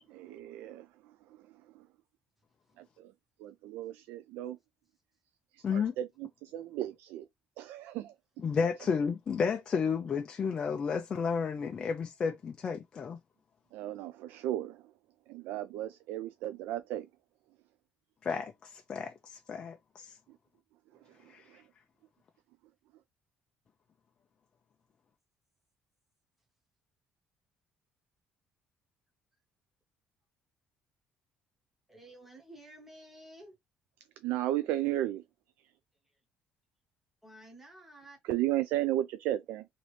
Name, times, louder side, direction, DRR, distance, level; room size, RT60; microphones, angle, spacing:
voice 1, 0.1-0.9 1.8-1.9 2.8-3.1 3.4-4.6 5.7-7.2 7.6-8.1 13.7-14.8 15.3-17.1 21.5-21.6 34.2-35.2 38.2-39.7, right 14 dB, 85° right, 0.3 m, -34 dB
voice 2, 5.6-5.9 8.4-13.2 18.2-20.2 21.3-21.5, left 6 dB, 30° left, 0.3 m, -32 dB
voice 3, 31.9-33.5 37.2-38.2, right 1 dB, 5° right, 1.0 m, -52 dB
3.0 x 2.8 x 3.1 m
cardioid pair, 170°, 3 cm